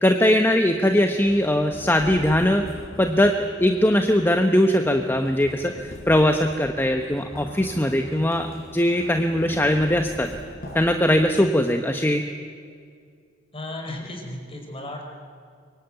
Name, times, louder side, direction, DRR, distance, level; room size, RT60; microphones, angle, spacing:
voice 1, 0.0-2.7 3.0-8.5 8.7-10.3 10.7-12.2, left 1 dB, 10° left, 5 dB, 1.1 m, -20 dB
sound 1, 0.7-11.7, equal, 55° left, 6.5 m, -41 dB
voice 2, 13.5-15.0, left 1 dB, 30° left, 2 dB, 5.4 m, -34 dB
24.0 x 23.5 x 9.3 m, 2.2 s
head